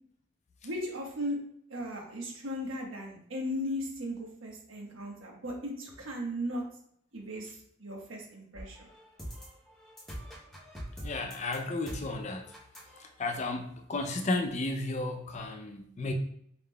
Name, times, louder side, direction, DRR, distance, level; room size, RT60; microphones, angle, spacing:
voice 1, 0.6-1.4 1.7-6.6 7.1-7.5 7.8-8.9, equal, 85° right, 0 dB, 1.2 m, -36 dB
sound 1, 8.5-13.6, equal, ahead, 0.8 m, -45 dB
voice 2, 11.0-12.5 13.0-16.1, left 2 dB, 35° left, 5 dB, 0.4 m, -33 dB
4.5 x 3.6 x 2.3 m, 0.68 s
head